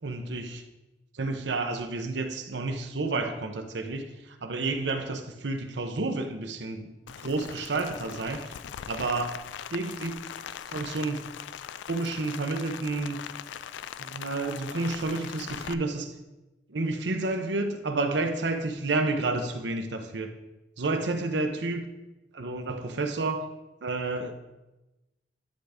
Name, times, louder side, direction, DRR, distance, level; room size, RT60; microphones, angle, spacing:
voice 1, 0.0-0.6 1.1-6.9 7.2-8.5 8.9-9.4 9.7-10.2 10.7-11.3 11.9-13.2 14.0-16.2 16.7-20.3 20.8-21.9 22.3-23.5 23.8-24.3, right 3 dB, 80° right, 6 dB, 0.8 m, -30 dB
Rain, 7.1-15.7, left 9 dB, 90° left, 0.3 m, -41 dB
10.5 x 3.5 x 5.0 m, 1.0 s
head